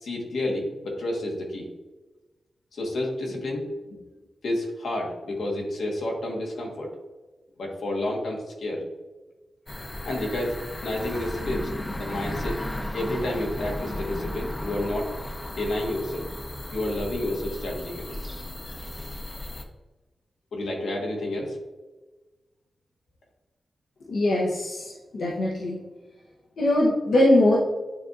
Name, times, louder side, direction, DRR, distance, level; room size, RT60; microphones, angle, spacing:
voice 1, 0.0-1.7 2.7-4.0 4.4-6.9 7.6-8.9 10.0-10.6 10.8-11.7 12.0-12.6 12.9-15.1 15.5-16.3 16.7-18.1 20.5-21.6, left 1 dB, 90° left, -1 dB, 1.4 m, -30 dB
sound 1, 9.7-19.6, left 1 dB, 20° left, 0.6 m, -35 dB
voice 2, 24.1-25.8 26.6-27.6, left 1 dB, 70° left, -4 dB, 0.8 m, -21 dB
9.5 x 4.0 x 2.5 m, 1.2 s
wide cardioid pair, 165°, 0 cm